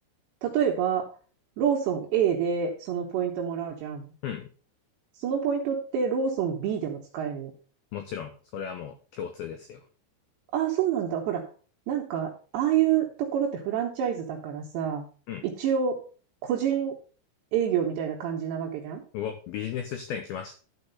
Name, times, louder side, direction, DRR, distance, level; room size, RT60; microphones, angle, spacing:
voice 1, 0.4-1.1 1.6-4.1 5.2-7.5 10.5-11.4 11.9-15.1 15.4-16.0 16.4-16.9 17.5-19.0, right 8 dB, 75° right, 0 dB, 3.0 m, -27 dB
voice 2, 7.9-9.8 15.3-15.4 19.1-20.5, left 8 dB, 85° left, 6 dB, 2.1 m, -35 dB
12.0 x 4.8 x 5.5 m, 0.39 s
omnidirectional pair, 5.5 m